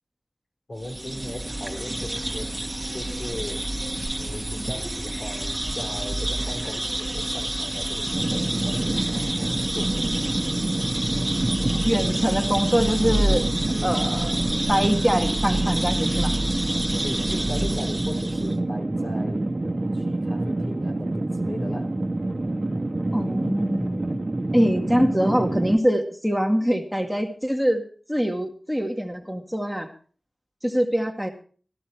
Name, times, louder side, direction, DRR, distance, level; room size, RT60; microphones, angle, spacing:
voice 1, 0.7-3.7 4.1-10.0 17.0-22.0, left 1 dB, 60° left, 3.2 m, -38 dB
sound 1, 0.8-18.6, right 1 dB, 25° right, 1.7 m, -28 dB
sound 2, 8.1-25.8, right 2 dB, 50° right, 1.3 m, -27 dB
voice 2, 11.8-13.5 13.8-14.4 14.7-16.3 23.1-24.0 24.5-29.9 30.6-31.3, equal, ahead, 1.8 m, -24 dB
14.0 x 12.5 x 4.5 m
wide cardioid pair, 50°, 0 cm